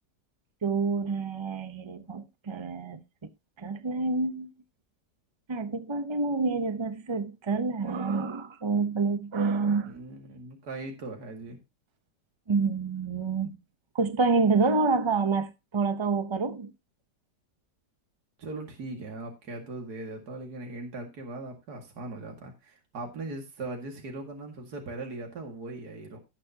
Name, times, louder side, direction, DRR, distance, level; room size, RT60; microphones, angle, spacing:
voice 1, 0.6-3.0 3.6-4.5 5.5-9.9 12.5-13.6 13.9-16.7, right 4 dB, 45° right, 0.3 m, -27 dB
voice 2, 9.8-11.6 18.4-26.2, right 2 dB, 70° right, 2.6 m, -39 dB
17.5 x 6.7 x 2.8 m
omnidirectional pair, 1.8 m